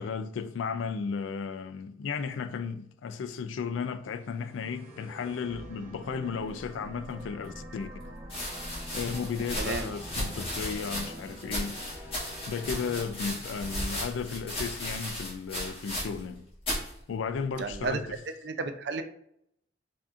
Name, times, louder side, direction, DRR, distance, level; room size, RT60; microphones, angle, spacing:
voice 1, 0.0-7.9 8.9-12.1 12.5-16.5 17.1-18.2, left 5 dB, 80° left, 0.3 m, -34 dB
sound 1, 4.0-14.3, equal, 15° right, 0.9 m, -46 dB
sound 2, 7.2-7.3 8.2-16.3 16.6-16.9 17.7-18.1, equal, 30° left, 1.3 m, -35 dB
voice 2, 17.6-18.2 18.4-19.0, right 3 dB, 60° right, 0.4 m, -32 dB
4.9 x 2.6 x 2.4 m
head